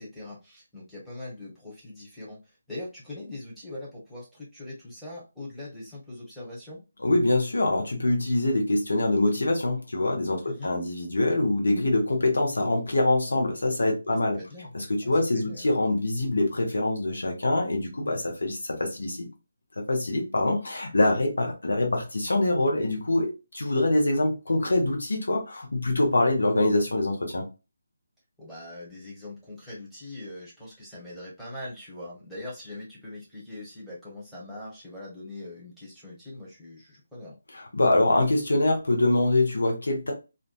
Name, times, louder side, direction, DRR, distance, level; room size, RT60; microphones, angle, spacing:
voice 1, 0.0-6.8 10.4-10.7 14.3-14.7 15.0-15.6 28.4-37.4, left 1 dB, 5° right, 0.9 m, -42 dB
voice 2, 7.0-14.4 14.7-19.3 19.8-27.4 37.5-40.1, left 2 dB, 65° left, 0.8 m, -24 dB
2.5 x 2.2 x 2.3 m
figure-of-eight pair, 150°, 0 cm